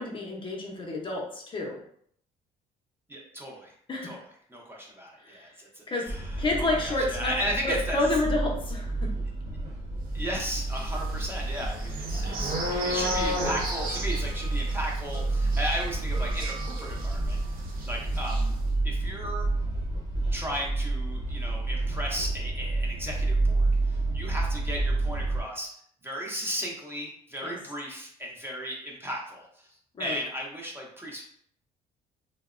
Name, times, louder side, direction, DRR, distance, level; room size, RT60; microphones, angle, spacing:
voice 1, 0.0-1.8 3.9-4.2 5.2-5.5 5.9-6.0 6.4-7.3 7.6-8.9 27.4-27.5 29.9-30.2, left 2 dB, 30° left, -1 dB, 0.5 m, -29 dB
voice 2, 3.1-3.7 4.1-4.2 4.5-8.0 10.1-17.4 17.9-18.5 18.8-19.5 20.3-23.7 24.1-25.7 26.0-29.4 30.0-31.2, equal, 15° right, -2 dB, 0.6 m, -35 dB
sound 1, 6.1-25.4, right 2 dB, 45° right, 1.0 m, -30 dB
sound 2, 10.7-17.4 17.7-17.9 18.1-18.4, equal, 60° right, 0.6 m, -33 dB
2.7 x 2.0 x 2.4 m, 0.64 s
cardioid pair, 110°, 17 cm